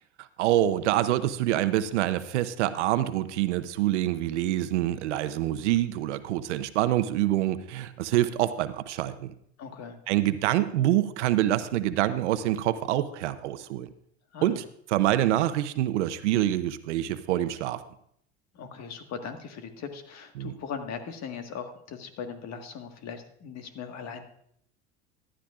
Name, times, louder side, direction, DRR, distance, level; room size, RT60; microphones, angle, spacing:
voice 1, 0.4-9.3 10.1-13.9 14.4-14.6 14.9-17.8 20.4-20.5, right 13 dB, 85° right, 13 dB, 0.8 m, -26 dB
voice 2, 9.6-10.0 14.3-14.6 18.5-24.2, left 6 dB, 50° left, 6 dB, 1.7 m, -39 dB
15.0 x 11.5 x 2.5 m, 0.68 s
hypercardioid pair, 90°, 34 cm